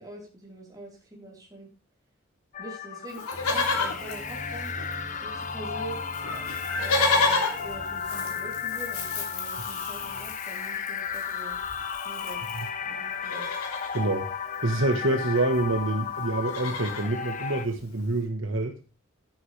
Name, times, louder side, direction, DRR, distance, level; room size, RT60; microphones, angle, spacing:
voice 1, 0.0-1.7 2.6-4.7 5.2-6.0 6.7-11.6 12.0-12.4 12.8-13.7, right 2 dB, 15° right, -1 dB, 4.0 m, -44 dB
sound 1, 2.5-17.6, left 7 dB, 35° left, 1.0 m, -34 dB
Livestock farm animals working animals, 3.1-5.2 5.4-5.5 5.7-12.7 13.1-14.0 15.3-15.4 15.5-15.8 16.2-17.1 17.7-17.8, left 3 dB, 85° left, 3.1 m, -31 dB
sound 2, 3.3-10.3, equal, 5° left, 5.9 m, -44 dB
voice 2, 13.9-14.3 14.6-18.8, right 2 dB, 60° right, 6 dB, 1.3 m, -26 dB
11.5 x 11.0 x 3.3 m, 0.32 s
head